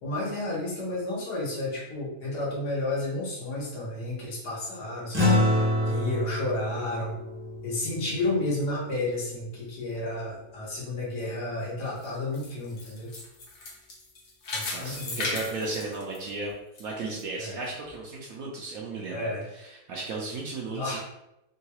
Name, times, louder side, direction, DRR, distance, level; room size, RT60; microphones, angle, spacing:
voice 1, 0.0-7.1 7.6-13.1 14.5-15.5 17.4-17.6 19.1-19.4 20.7-21.0, left 2 dB, 80° left, -6 dB, 1.6 m, -32 dB
sound 1, 5.1-9.8, left 1 dB, 15° right, 0.4 m, -28 dB
sound 2, 11.9-16.8 17.2-17.3 17.9-18.0, left 2 dB, 60° left, 1.2 m, -36 dB
voice 2, 14.6-16.5 16.8-21.0, right 3 dB, 70° right, -3 dB, 0.9 m, -35 dB
3.7 x 2.3 x 2.9 m, 0.89 s
omnidirectional pair, 1.7 m